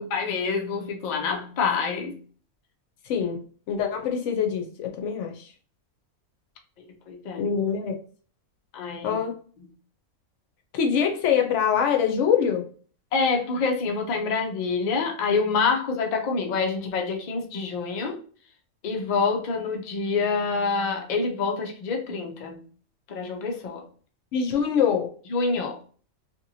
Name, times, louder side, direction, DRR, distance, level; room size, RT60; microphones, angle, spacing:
voice 1, 0.1-2.2 6.8-7.5 8.7-9.2 13.1-18.2 18.8-22.6 23.1-23.8 25.3-25.8, left 4 dB, 85° left, 1 dB, 0.4 m, -27 dB
voice 2, 3.1-3.4 3.7-5.5 7.4-7.9 9.0-9.3 10.7-12.6 24.3-25.1, left 7 dB, 65° left, 4 dB, 0.8 m, -24 dB
2.8 x 2.6 x 2.6 m, 0.43 s
omnidirectional pair, 1.5 m